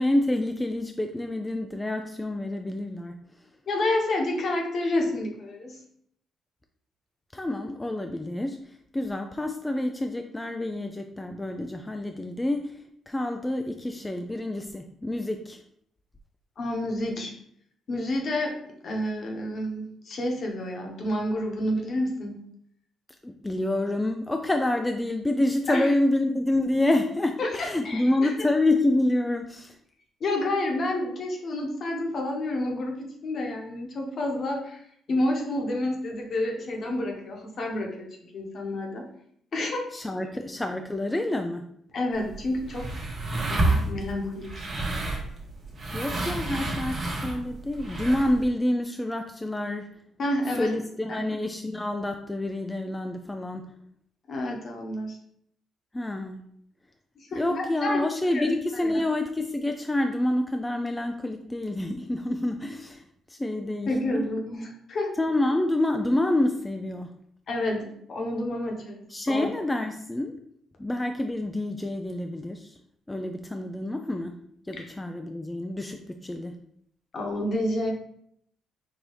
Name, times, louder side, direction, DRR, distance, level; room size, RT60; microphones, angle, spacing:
voice 1, 0.0-3.1 7.3-12.8 13.1-15.6 23.2-29.8 39.9-41.7 45.9-50.0 50.5-53.7 55.9-56.5 57.3-64.2 65.2-67.1 69.1-70.4 70.8-72.8 73.1-74.4 74.7-76.6, left 1 dB, 15° left, 5 dB, 0.3 m, -28 dB
voice 2, 3.7-5.8 16.6-17.3 17.9-18.6 18.8-22.4 25.7-25.9 27.4-28.3 30.2-34.8 35.1-38.1 38.3-39.0 39.5-39.9 41.9-42.9 43.4-44.7 50.2-50.7 51.1-51.2 54.3-55.2 57.2-58.0 58.3-58.5 58.7-58.9 63.6-65.1 67.5-69.5 74.7-74.9 77.1-77.9, left 1 dB, 55° left, 1 dB, 1.0 m, -29 dB
sound 1, 42.1-48.4, right 2 dB, 40° right, 1.1 m, -30 dB
4.6 x 2.7 x 3.1 m, 0.69 s
cardioid pair, 90°, 0 cm